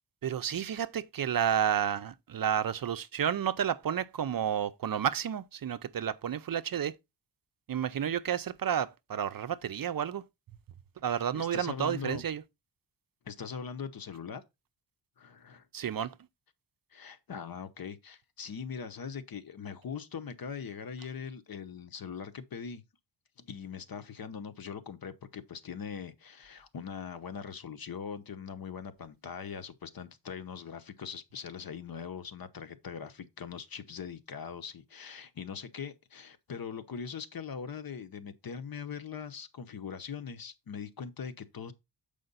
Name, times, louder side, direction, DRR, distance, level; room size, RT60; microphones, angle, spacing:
voice 1, 0.2-6.9 7.7-10.2 11.0-12.4 15.7-16.1, right 9 dB, 50° right, 0.5 m, -31 dB
voice 2, 11.3-12.2 13.3-14.4 15.2-15.7 16.9-22.8 23.4-41.7, left 6 dB, 55° left, 0.9 m, -41 dB
7.7 x 5.1 x 3.9 m
wide cardioid pair, 175°, 44 cm